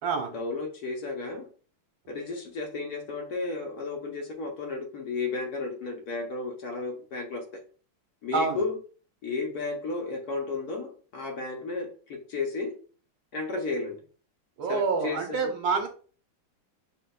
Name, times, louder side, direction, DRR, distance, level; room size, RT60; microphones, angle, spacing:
voice 1, 0.3-1.5 2.1-7.6 8.2-8.8 9.2-12.8 13.3-14.0 14.7-15.4, left 3 dB, 60° left, 1 dB, 1.1 m, -33 dB
voice 2, 8.3-8.6 14.6-15.9, right 5 dB, 75° right, 3 dB, 1.8 m, -27 dB
7.1 x 2.8 x 2.3 m, 0.40 s
omnidirectional pair, 2.2 m